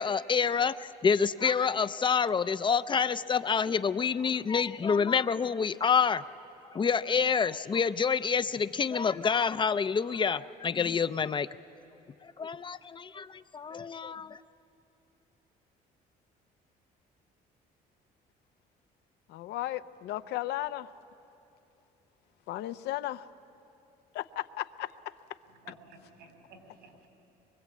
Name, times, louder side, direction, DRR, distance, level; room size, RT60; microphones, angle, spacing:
voice 1, 0.0-6.2 6.7-11.5 12.2-14.4, left 6 dB, 30° left, 14 dB, 0.5 m, -27 dB
voice 2, 19.3-20.9 22.5-23.3 24.1-24.9, left 15 dB, 80° left, 13 dB, 0.7 m, -35 dB
voice 3, 25.5-27.1, right 3 dB, 80° right, 5 dB, 3.7 m, -54 dB
23.5 x 22.5 x 8.4 m, 2.9 s
cardioid pair, 110°, 17 cm